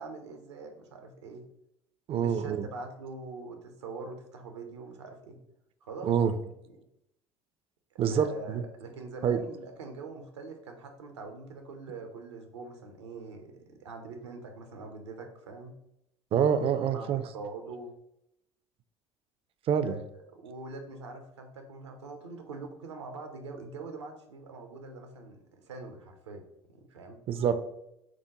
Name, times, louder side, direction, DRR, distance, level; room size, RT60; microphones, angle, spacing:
voice 1, 0.0-1.4 2.1-5.4 5.8-6.7 8.1-15.7 16.9-17.9 19.8-26.4 26.7-27.2, right 3 dB, 80° right, 4 dB, 0.6 m, -43 dB
voice 2, 2.1-2.7 6.0-6.3 8.0-8.6 9.2-9.4 16.3-17.2 19.7-20.0 27.3-27.5, right 8 dB, 40° right, 10 dB, 0.4 m, -26 dB
6.0 x 2.1 x 2.9 m, 0.81 s
figure-of-eight pair, 60°, 15 cm